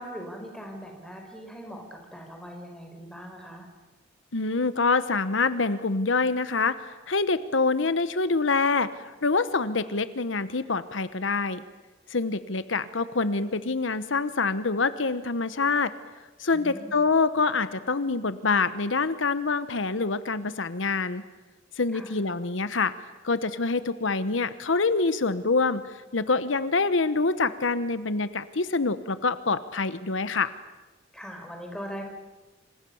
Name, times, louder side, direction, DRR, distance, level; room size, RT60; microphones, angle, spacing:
voice 1, 0.0-3.7 16.5-17.0 21.9-22.1 31.1-32.1, equal, 5° left, 2 dB, 5.1 m, -40 dB
voice 2, 4.3-11.6 12.1-15.9 16.4-21.2 21.8-22.9 23.2-30.5, left 4 dB, 80° left, 13 dB, 1.1 m, -26 dB
27.5 x 26.0 x 7.2 m, 1.2 s
head